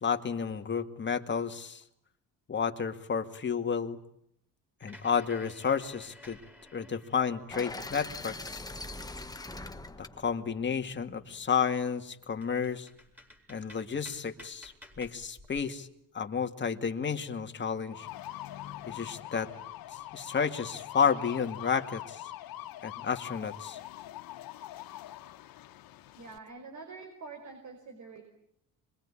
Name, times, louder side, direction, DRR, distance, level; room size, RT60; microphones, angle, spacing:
voice 1, 0.0-1.8 2.5-4.0 4.8-6.4 6.7-8.6 10.2-12.9 13.5-15.9 16.1-18.1 18.9-19.5 20.1-22.2 22.8-23.8, left 6 dB, 30° left, 5 dB, 2.2 m, -31 dB
sound 1, 4.8-7.8 8.3-9.8 10.2-10.3 10.7-11.2 11.8-11.9 12.2-15.7, left 1 dB, 5° right, 4.7 m, -54 dB
sound 2, 7.5-11.6, left 2 dB, 10° left, 1.3 m, -42 dB
sound 3, 17.9-26.4, left 14 dB, 80° left, 1.4 m, -43 dB
voice 2, 26.2-28.2, right 4 dB, 55° right, 6 dB, 5.1 m, -46 dB
26.0 x 22.0 x 10.0 m, 0.74 s
cardioid pair, 115°, 35 cm